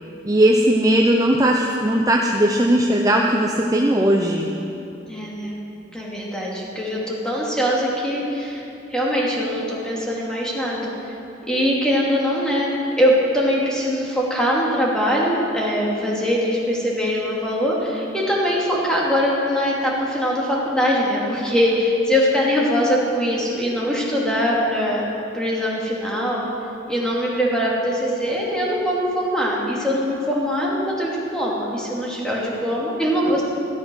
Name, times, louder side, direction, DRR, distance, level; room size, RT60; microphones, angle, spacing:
voice 1, 0.2-4.5, right 1 dB, 20° right, 0 dB, 0.7 m, -18 dB
voice 2, 5.1-5.6 5.9-8.6 8.9-10.9 11.5-25.1 25.3-26.5 26.9-33.4, equal, 5° left, -5 dB, 2.7 m, -22 dB
14.0 x 12.5 x 6.4 m, 2.8 s
head